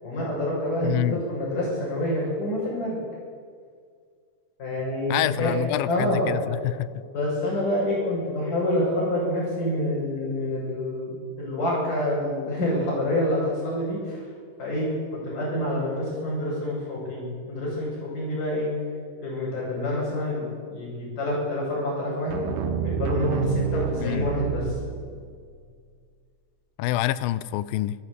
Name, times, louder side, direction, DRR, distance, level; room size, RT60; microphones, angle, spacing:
voice 1, 0.0-2.9 4.6-6.3 7.1-14.2 14.6-17.9 18.1-18.7 19.2-20.4 20.7-22.4 22.8-24.7, left 1 dB, 55° left, -8 dB, 8.5 m, -27 dB
voice 2, 0.8-1.2 5.1-7.0 24.0-24.3 26.8-28.0, left 14 dB, 80° left, 17 dB, 2.3 m, -27 dB
sound 1, 22.3-25.4, right 8 dB, 90° right, 3.5 m, -29 dB
26.5 x 14.5 x 8.4 m, 2.1 s
omnidirectional pair, 4.4 m